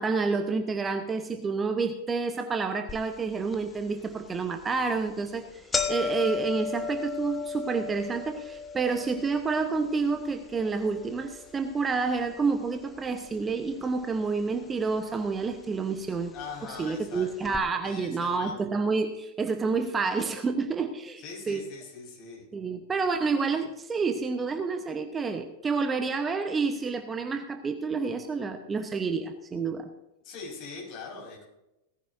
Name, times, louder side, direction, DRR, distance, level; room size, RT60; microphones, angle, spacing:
voice 1, 0.0-5.5 5.9-16.3 16.6-21.6 22.5-29.9, right 4 dB, 15° right, 7 dB, 1.0 m, -29 dB
sound 1, 2.9-3.0 3.5-3.6 4.4-4.6 5.0-5.1 5.3-13.5 13.8-14.6 15.4-15.5 16.4-16.5 16.8-16.9 17.4-17.6, left 5 dB, 15° left, 1.1 m, -36 dB
voice 2, 16.3-17.3 17.8-18.5 21.2-22.4 30.2-31.4, left 5 dB, 40° left, -2 dB, 5.4 m, -41 dB
18.0 x 15.0 x 2.7 m, 0.92 s
figure-of-eight pair, 90°, 0 cm